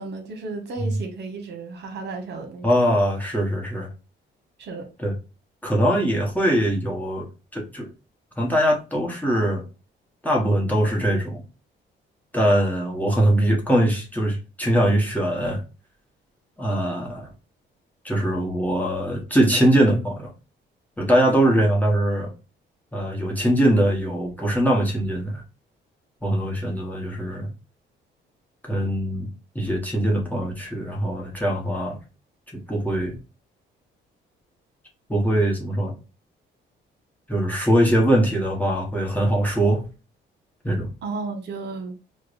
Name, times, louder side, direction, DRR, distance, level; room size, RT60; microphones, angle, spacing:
voice 1, 0.0-2.7 4.6-4.9 41.0-41.9, right 3 dB, 60° right, 1.0 m, -33 dB
voice 2, 2.6-3.9 5.0-5.1 5.6-7.2 7.5-7.9 8.4-9.6 10.2-11.4 12.3-15.6 16.6-17.3 18.0-20.3 21.0-22.3 22.9-25.4 26.2-27.5 28.6-29.3 29.5-32.0 32.5-33.2 35.1-35.9 37.3-39.8 40.6-40.9, right 1 dB, 10° left, 1.0 m, -22 dB
4.7 x 2.2 x 2.5 m
cardioid pair, 90°, 20 cm